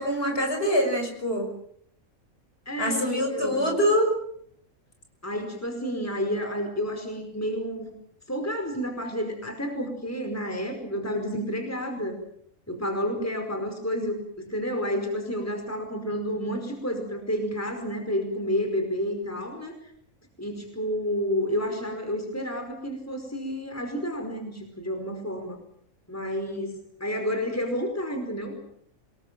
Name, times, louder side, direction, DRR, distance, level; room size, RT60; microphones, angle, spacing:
voice 1, 0.0-1.5 2.8-4.1, equal, 45° left, 4 dB, 6.5 m, -24 dB
voice 2, 2.6-3.7 5.2-7.9 8.3-12.2 12.7-14.2 14.5-19.8 20.4-25.6 26.1-28.6, equal, 10° left, 5 dB, 5.0 m, -30 dB
26.5 x 22.0 x 7.6 m, 0.68 s
omnidirectional pair, 1.5 m